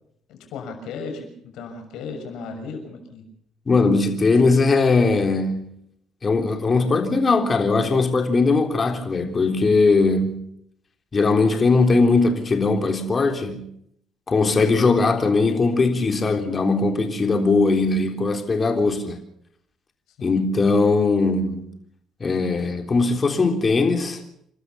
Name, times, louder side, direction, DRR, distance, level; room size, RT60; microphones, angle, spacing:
voice 1, 0.3-3.3 14.8-15.0 20.2-20.4, left 4 dB, 75° left, 6.6 m, -35 dB
voice 2, 3.7-5.7 6.2-10.5 11.1-13.7 14.3-19.2 20.2-21.7 22.2-24.2, left 3 dB, 30° left, 3.7 m, -20 dB
29.0 x 13.0 x 7.1 m
cardioid pair, 95°, 0 cm